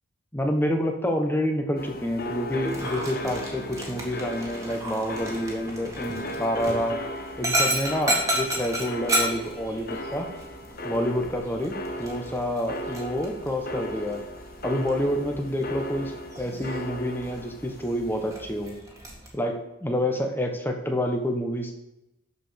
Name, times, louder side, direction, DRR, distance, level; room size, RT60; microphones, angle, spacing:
voice 1, 0.3-7.0 7.4-10.3 10.8-14.2 14.6-18.8 19.3-21.7, equal, 10° left, 3 dB, 1.2 m, -28 dB
sound 1, 1.8-18.8, left 1 dB, 45° left, 1.1 m, -37 dB
Dog, 2.6-19.3, right 1 dB, 15° right, 2.0 m, -33 dB
sound 2, 3.2-8.1, left 3 dB, 80° left, 2.3 m, -48 dB
12.5 x 5.0 x 5.2 m, 0.92 s
head